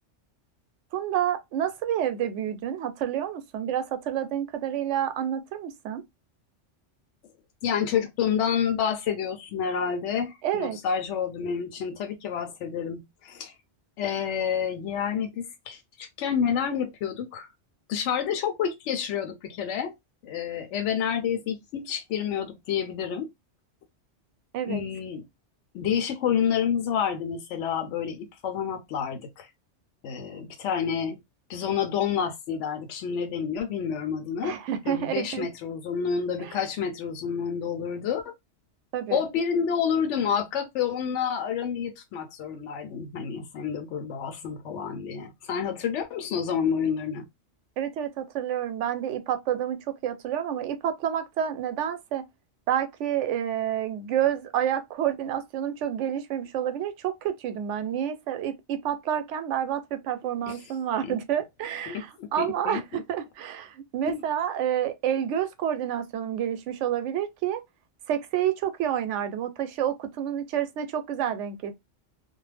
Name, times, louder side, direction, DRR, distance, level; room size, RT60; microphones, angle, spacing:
voice 1, 0.9-6.0 10.4-10.8 24.5-24.8 34.4-35.5 38.9-39.2 47.8-52.2 52.7-62.8 63.1-67.6 68.1-71.7, right 10 dB, 80° right, 0.9 m, -29 dB
voice 2, 7.6-13.5 14.0-17.5 17.9-19.9 20.2-23.3 24.6-25.3 25.7-29.5 30.0-31.2 31.5-34.6 34.9-38.3 39.1-47.3 60.5-60.7 61.0-61.2 61.9-63.0 64.0-64.2, left 7 dB, 80° left, 0.9 m, -29 dB
2.4 x 2.0 x 3.2 m
omnidirectional pair, 1.2 m